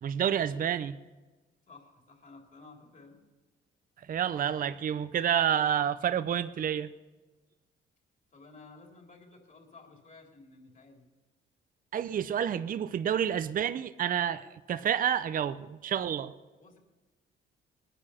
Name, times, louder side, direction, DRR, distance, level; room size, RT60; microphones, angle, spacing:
voice 1, 0.0-0.9 4.1-6.9 11.9-16.3, right 9 dB, 45° right, 14 dB, 0.6 m, -29 dB
voice 2, 1.7-3.2 8.3-11.1 16.6-16.8, left 3 dB, 40° left, 1 dB, 3.6 m, -54 dB
20.0 x 10.0 x 5.7 m, 1.2 s
cardioid pair, 90°, 20 cm